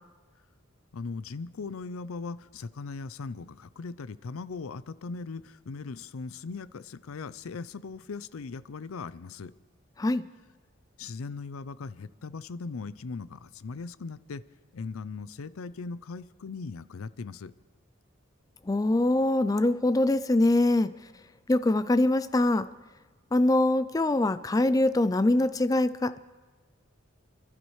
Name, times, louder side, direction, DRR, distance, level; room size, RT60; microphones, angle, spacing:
voice 1, 0.9-9.5 11.0-14.4 14.7-17.5, left 4 dB, 90° left, 16 dB, 0.5 m, -39 dB
voice 2, 18.7-20.9 21.5-22.7 23.3-26.2, left 2 dB, 15° left, 14 dB, 0.3 m, -23 dB
29.5 x 12.0 x 3.2 m, 1.4 s
head